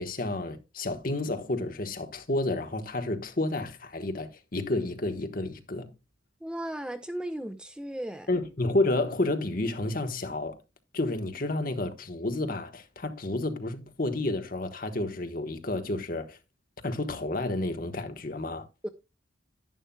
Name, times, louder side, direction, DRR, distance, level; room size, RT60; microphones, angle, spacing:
voice 1, 0.0-5.9 8.3-10.6 10.9-16.4 16.8-18.7, left 2 dB, 45° left, 1.1 m, -30 dB
voice 2, 6.4-8.3 18.8-18.9, right 1 dB, 5° right, 0.4 m, -35 dB
11.0 x 10.0 x 2.2 m
head